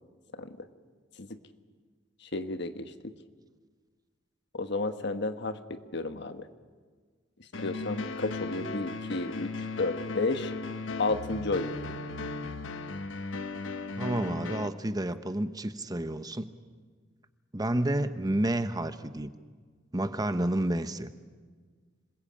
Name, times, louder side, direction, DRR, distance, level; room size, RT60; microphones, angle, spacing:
voice 1, 2.3-3.1 4.5-6.5 7.6-9.5 9.8-10.5 11.0-11.7, left 3 dB, 60° left, 9 dB, 1.4 m, -32 dB
sound 1, 7.5-14.7, left 3 dB, 80° left, 1.3 m, -37 dB
voice 2, 14.0-16.5 17.5-19.3 19.9-21.1, right 1 dB, 20° right, 10 dB, 0.9 m, -30 dB
26.5 x 21.0 x 8.7 m, 1.5 s
head